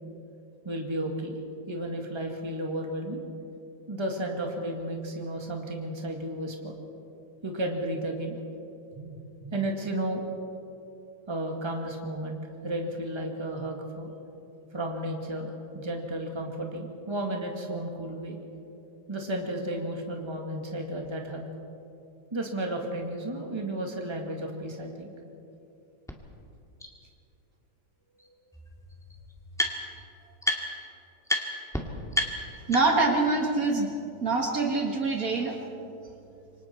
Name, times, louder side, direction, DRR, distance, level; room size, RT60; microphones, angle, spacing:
voice 1, 0.6-1.4 1.7-3.2 3.9-6.7 7.4-8.4 8.9-9.1 9.4-10.3 11.3-14.1 14.7-18.4 19.1-21.4 22.3-25.1, right 1 dB, 15° right, 1 dB, 2.0 m, -33 dB
sound 1, 26.1-26.2 26.8-26.9 28.2-28.3 28.5-30.0 30.4-30.9 31.2-31.4 31.7-31.8 32.1-33.1, left 1 dB, ahead, 1.9 m, -30 dB
voice 2, 32.7-33.9 34.2-35.6, right 3 dB, 55° right, 1 dB, 2.2 m, -25 dB
28.0 x 24.5 x 4.5 m, 2.9 s
omnidirectional pair, 1.9 m